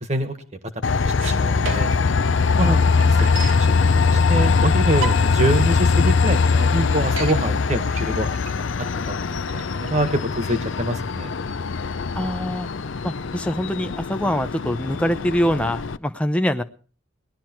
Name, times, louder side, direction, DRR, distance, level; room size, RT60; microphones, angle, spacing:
Train, 0.8-16.0, left 4 dB, 65° left, 0.6 m, -21 dB
voice 1, 1.2-1.9 2.6-2.8 3.3-3.7 4.0-8.7 9.4-11.3, right 1 dB, 35° right, 8 dB, 1.6 m, -25 dB
sound 1, 1.2-2.1 2.5-2.6 2.8-3.7 4.4-4.5 4.9-5.5 6.0-6.1 6.3-6.4 6.8-7.4 7.9-10.8, right 4 dB, 70° right, 2.3 m, -33 dB
voice 2, 12.1-12.7 13.0-16.6, equal, 5° left, 7 dB, 0.7 m, -24 dB
19.0 x 12.0 x 4.5 m, 0.42 s
head